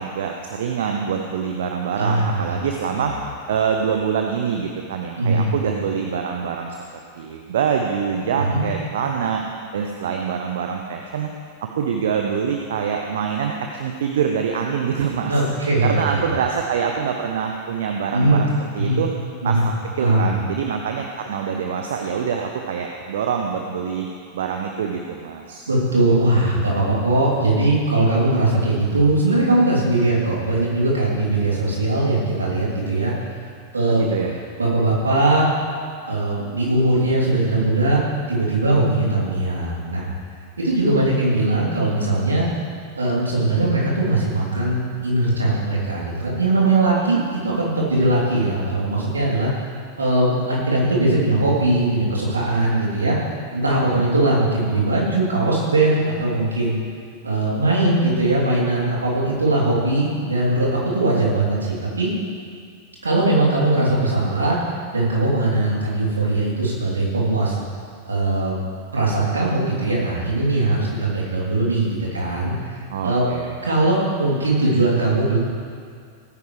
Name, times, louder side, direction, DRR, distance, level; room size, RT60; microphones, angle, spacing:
voice 1, 0.0-3.1 3.5-6.8 7.1-9.4 9.7-11.3 11.8-15.3 15.8-18.5 18.7-19.1 19.4-24.1 24.3-25.7 33.9-34.4 53.8-54.1 72.9-73.5, right 7 dB, 60° right, 2 dB, 0.9 m, -25 dB
voice 2, 2.0-2.4 2.9-3.0 5.2-5.5 8.3-8.6 15.2-16.2 18.1-18.4 18.8-19.0 19.4-19.6 20.0-20.3 25.7-33.1 33.7-34.0 34.6-35.5 36.1-38.0 38.3-40.1 40.6-42.5 42.9-49.5 50.0-53.2 53.5-56.8 57.2-62.1 63.0-64.5 64.9-67.6 68.0-68.6 68.9-72.7 73.0-73.3 73.6-75.4, right 2 dB, 75° right, -5 dB, 3.2 m, -20 dB
19.0 x 9.4 x 3.3 m, 2.2 s
figure-of-eight pair, 90°, 0 cm